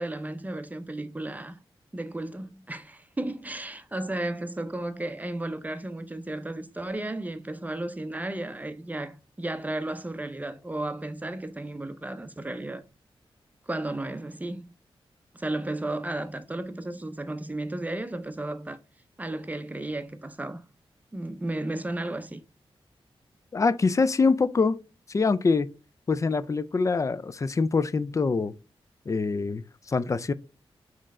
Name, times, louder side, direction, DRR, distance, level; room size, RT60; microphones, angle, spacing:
voice 1, 0.0-1.6 1.9-12.8 13.7-14.6 15.3-18.8 19.2-20.6 21.1-22.4, right 2 dB, 15° right, 0.6 m, -34 dB
voice 2, 23.5-24.8 25.1-25.7 26.1-28.5 29.1-30.3, left 4 dB, 30° left, 0.3 m, -24 dB
4.4 x 3.2 x 3.6 m
cardioid pair, 70°, 10 cm